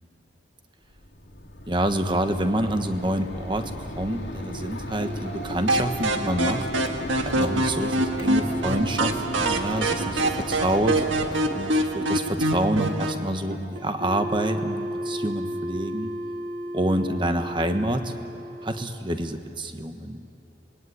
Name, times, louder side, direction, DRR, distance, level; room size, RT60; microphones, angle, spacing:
Mechanisms, 0.9-11.8, equal, 70° left, 2.5 m, -36 dB
voice 1, 1.7-6.7 7.2-11.0 11.5-16.1 16.7-18.1 18.6-20.2, right 1 dB, 25° right, 7 dB, 1.3 m, -27 dB
sound 1, 4.9-18.8, right 1 dB, 50° right, 2.4 m, -35 dB
sound 2, 5.7-13.2, right 1 dB, 90° right, 1.7 m, -25 dB
26.5 x 20.5 x 9.7 m, 2.9 s
head